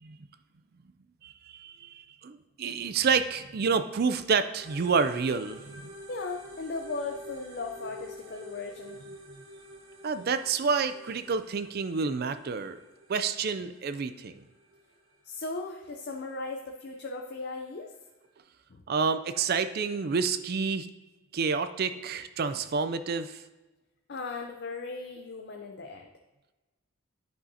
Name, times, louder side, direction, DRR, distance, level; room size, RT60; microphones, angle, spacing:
voice 1, 1.2-5.9 10.0-12.8 13.1-14.4 18.9-20.9 21.3-23.4, right 5 dB, 45° right, 11 dB, 0.4 m, -29 dB
sound 1, 4.6-18.3, equal, 65° right, 1.4 m, -50 dB
voice 2, 6.1-9.0 15.2-17.9 18.7-18.8 24.1-26.1, left 3 dB, 50° left, 2 dB, 0.6 m, -37 dB
10.5 x 5.6 x 2.7 m, 1.1 s
head